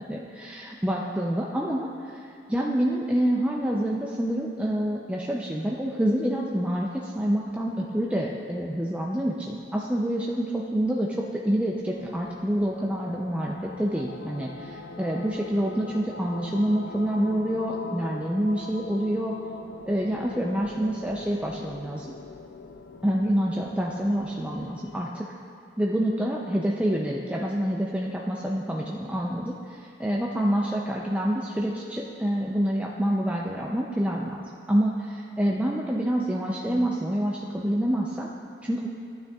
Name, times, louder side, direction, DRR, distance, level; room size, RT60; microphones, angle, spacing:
voice 1, 0.1-2.2 2.5-19.3 19.9-22.1 23.0-25.3 25.8-38.3 38.6-38.9, equal, 5° right, -2 dB, 0.4 m, -27 dB
sound 1, 11.9-25.1, left 3 dB, 85° left, 0.4 m, -42 dB
12.5 x 8.9 x 2.3 m, 2.6 s
head